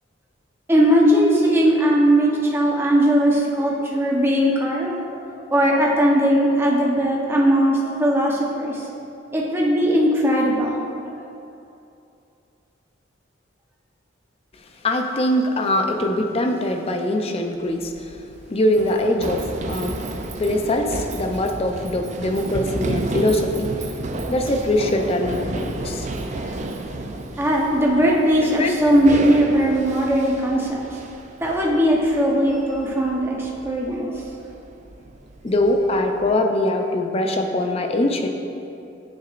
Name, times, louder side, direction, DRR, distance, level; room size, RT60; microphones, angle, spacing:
voice 1, 0.7-8.8 9.3-10.8 27.4-30.8 31.4-34.1, equal, 10° right, -3 dB, 0.8 m, -19 dB
voice 2, 14.8-18.1 18.5-20.0 20.4-23.7 24.3-26.1 28.1-28.8 30.2-30.6 35.4-38.3, left 1 dB, 30° left, 4 dB, 0.5 m, -22 dB
Run, 17.7-36.3, right 2 dB, 35° right, 0.4 m, -32 dB
9.8 x 6.0 x 2.5 m, 2.7 s
head